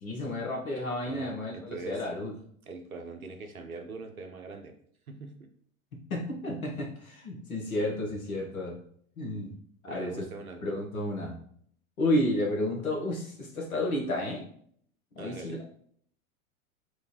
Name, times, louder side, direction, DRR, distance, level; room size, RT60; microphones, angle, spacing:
voice 1, 0.0-2.3 6.1-8.8 9.2-9.5 9.8-10.2 10.6-11.4 12.0-14.4 15.1-15.6, left 1 dB, 80° left, -1 dB, 1.0 m, -31 dB
voice 2, 1.0-2.0 2.7-4.7 5.1-5.3 9.9-10.7 15.2-15.6, right 3 dB, 90° right, 5 dB, 0.6 m, -42 dB
3.1 x 2.4 x 2.8 m, 0.62 s
figure-of-eight pair, 85°, 41 cm